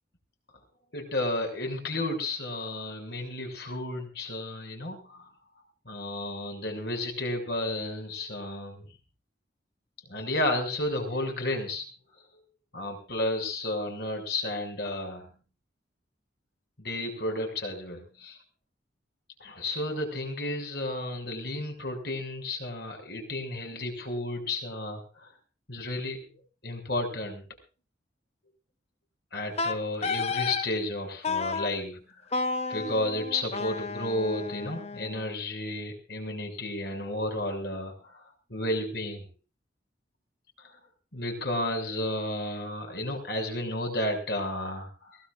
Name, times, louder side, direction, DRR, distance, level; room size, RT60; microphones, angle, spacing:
voice 1, 0.9-5.2 5.8-8.8 10.1-11.8 12.7-15.3 16.8-18.4 19.4-25.3 25.7-26.2 26.6-27.4 29.3-32.0 32.7-38.2 38.5-39.2 40.6-40.7 41.1-45.2, left 1 dB, 60° left, 4 dB, 6.6 m, -32 dB
Wind instrument woodwind instrument, 29.6-30.7 31.2-31.7 32.3-35.3, left 4 dB, 35° left, 0.7 m, -32 dB
22.5 x 18.5 x 2.6 m, 0.34 s
head